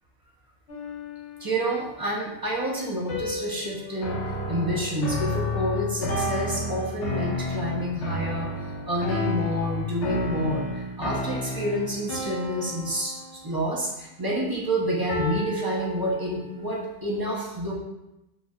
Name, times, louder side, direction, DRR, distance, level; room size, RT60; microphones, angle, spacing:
sound 1, 0.7-1.9 3.1-5.5 6.1-7.6 9.1-10.6 12.1-14.0 15.1-16.7, left 1 dB, 50° left, 1.5 m, -36 dB
voice 1, 1.4-8.5 8.9-13.1 13.4-17.8, equal, 20° right, -4 dB, 0.8 m, -28 dB
sound 2, 4.0-12.1, left 2 dB, 75° left, 1.0 m, -31 dB
6.0 x 2.5 x 2.4 m, 0.91 s
omnidirectional pair, 1.2 m